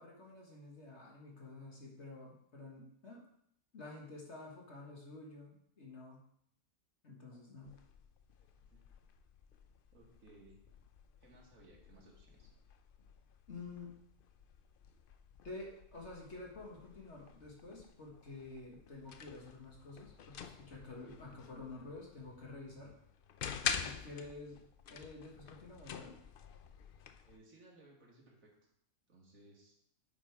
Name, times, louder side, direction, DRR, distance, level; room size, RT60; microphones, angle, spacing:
voice 1, 0.0-3.2 3.7-6.2 7.0-7.8 13.5-13.9 15.4-22.9 23.8-24.6 24.9-26.2, left 3 dB, 50° left, -2 dB, 1.8 m, -50 dB
sound 1, 7.6-27.4, left 7 dB, 80° left, 0.4 m, -48 dB
voice 2, 8.4-8.8 9.9-10.6 11.2-12.5 27.2-28.7 29.1-29.7, right 2 dB, 60° right, -2 dB, 2.2 m, -61 dB
8.3 x 5.2 x 4.7 m, 0.71 s
omnidirectional pair, 1.6 m